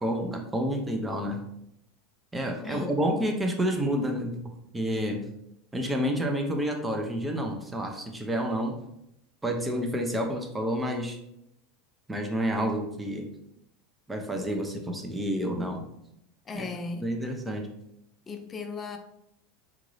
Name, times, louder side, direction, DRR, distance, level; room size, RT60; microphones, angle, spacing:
voice 1, 0.0-1.4 2.3-4.3 4.7-5.2 5.7-8.8 9.4-11.2 12.1-13.3 14.1-15.8 16.5-16.7 17.0-17.7, equal, 10° right, 3 dB, 0.7 m, -29 dB
voice 2, 2.6-3.0 16.5-17.1 18.3-19.0, left 4 dB, 25° left, 6 dB, 0.5 m, -36 dB
3.7 x 2.5 x 3.1 m, 0.78 s
hypercardioid pair, 80°, 0 cm